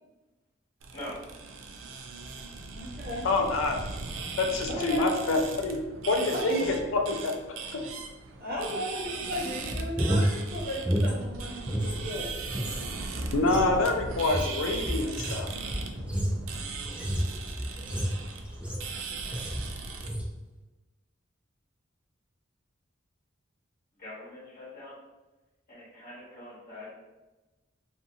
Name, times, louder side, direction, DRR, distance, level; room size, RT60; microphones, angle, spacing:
thuja squeaking in wind, 0.8-20.1, right 4 dB, 80° right, 0.4 m, -39 dB
voice 1, 2.7-3.3 4.7-5.1 6.3-6.7 8.4-11.5 11.8-12.3, left 1 dB, 50° right, -4 dB, 0.8 m, -34 dB
voice 2, 3.2-3.8 4.4-5.8 6.1-7.8 13.3-15.5, left 2 dB, 85° left, 3 dB, 0.4 m, -27 dB
sound 1, 9.6-12.0 12.3-19.0 19.3-19.7 20.0-20.3, equal, 5° right, 0.4 m, -31 dB
voice 3, 24.0-24.9 25.7-26.9, left 1 dB, 50° left, -10 dB, 1.0 m, -43 dB
2.6 x 2.5 x 2.5 m, 1.1 s
head